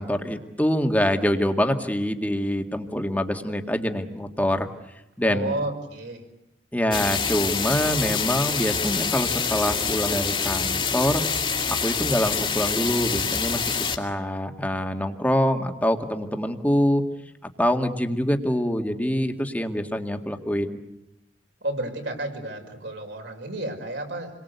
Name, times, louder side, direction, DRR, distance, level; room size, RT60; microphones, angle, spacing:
voice 1, 0.0-4.7 5.2-5.5 6.7-11.3 11.8-17.0 17.6-20.8, equal, 10° left, 5 dB, 2.0 m, -25 dB
voice 2, 5.2-6.2 21.6-24.3, right 1 dB, 70° right, 3 dB, 5.7 m, -31 dB
sound 1, 6.9-14.0, left 5 dB, 30° left, 2.5 m, -26 dB
28.5 x 23.0 x 8.3 m, 0.86 s
head